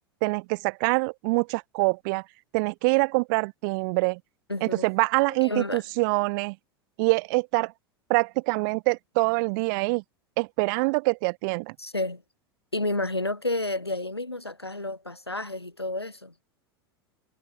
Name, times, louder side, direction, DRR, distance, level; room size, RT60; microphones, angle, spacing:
voice 1, 0.2-2.2 2.5-4.2 4.6-6.6 7.0-7.7 8.1-10.0 10.4-11.7, right 30 dB, 50° right, 4.5 m, -25 dB
voice 2, 4.5-4.9 5.3-5.8 11.8-12.2 12.7-16.3, left 2 dB, 90° left, 1.9 m, -30 dB
figure-of-eight pair, 85°, 13 cm